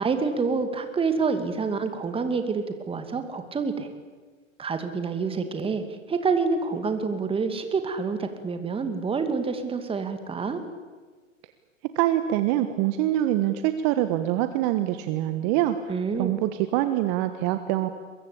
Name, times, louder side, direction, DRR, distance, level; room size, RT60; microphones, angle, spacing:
voice 1, 0.0-3.9 4.6-10.6 15.9-16.3, right 4 dB, 15° right, 8 dB, 2.5 m, -27 dB
voice 2, 11.8-17.9, right 13 dB, 40° right, 10 dB, 1.5 m, -25 dB
23.5 x 22.5 x 8.6 m, 1.4 s
hypercardioid pair, 115°, 39 cm